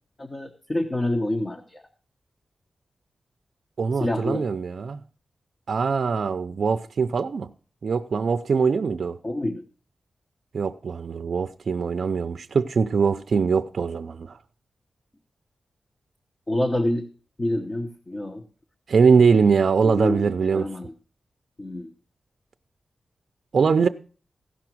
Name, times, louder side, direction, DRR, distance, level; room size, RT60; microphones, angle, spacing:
voice 1, 0.2-1.8 4.0-4.5 9.2-9.6 16.5-17.1 17.4-18.4 19.8-20.9 21.6-21.9, left 1 dB, 25° left, 0.9 m, -27 dB
voice 2, 3.8-5.0 5.7-7.5 7.8-9.2 10.5-14.4 18.9-20.7 23.5-23.9, right 5 dB, 55° right, 0.5 m, -22 dB
15.5 x 5.9 x 6.0 m
wide cardioid pair, 165°, 0 cm